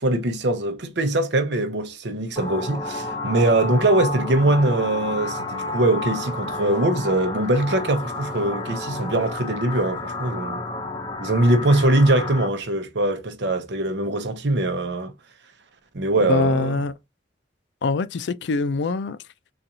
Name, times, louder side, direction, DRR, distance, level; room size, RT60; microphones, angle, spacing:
voice 1, 0.0-10.6 11.2-15.1 15.9-16.8, right 1 dB, 75° right, 0.7 m, -22 dB
sound 1, 2.4-12.5, left 2 dB, 20° left, 0.7 m, -31 dB
voice 2, 16.3-16.9 17.8-19.2, left 3 dB, 75° left, 0.4 m, -23 dB
4.0 x 2.5 x 2.8 m
head